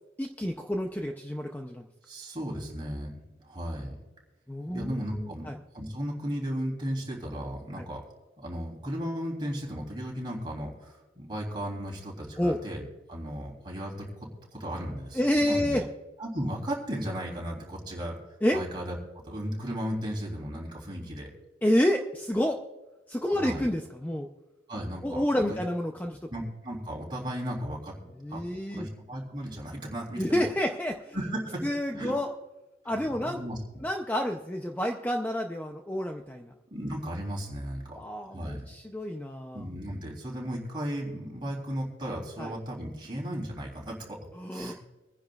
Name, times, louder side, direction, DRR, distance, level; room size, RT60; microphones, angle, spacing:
voice 1, 0.2-1.9 4.5-5.6 7.8-7.9 12.4-12.6 15.1-15.9 18.4-18.6 21.6-22.6 23.1-24.3 25.0-26.2 28.2-28.9 30.2-31.2 31.6-32.3 32.8-33.4 33.8-36.5 38.0-39.6 42.4-42.5 44.4-44.7, left 1 dB, 10° left, 3 dB, 0.5 m, -29 dB
voice 2, 2.0-4.0 4.7-8.0 8.4-12.8 13.1-15.8 16.2-18.1 18.5-19.0 19.2-21.3 23.3-23.7 24.7-25.6 26.3-28.4 28.7-30.4 31.1-31.6 31.9-32.1 33.2-33.6 36.7-38.0 38.3-38.6 39.5-44.2 44.5-44.7, equal, 25° right, -2 dB, 3.2 m, -35 dB
25.5 x 10.0 x 2.4 m, 1.1 s
head